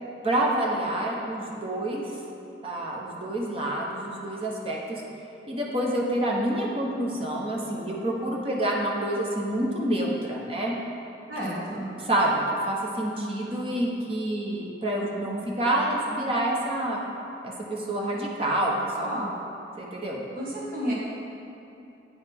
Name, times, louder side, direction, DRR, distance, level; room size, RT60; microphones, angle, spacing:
voice 1, 0.2-2.0 2.6-5.0 5.5-10.7 11.7-17.0 17.4-19.1 19.8-20.2, right 1 dB, 30° right, -2 dB, 0.9 m, -28 dB
voice 2, 11.3-11.9 19.0-19.3 20.3-20.9, equal, 50° right, -6 dB, 1.6 m, -31 dB
8.4 x 6.4 x 3.5 m, 2.9 s
head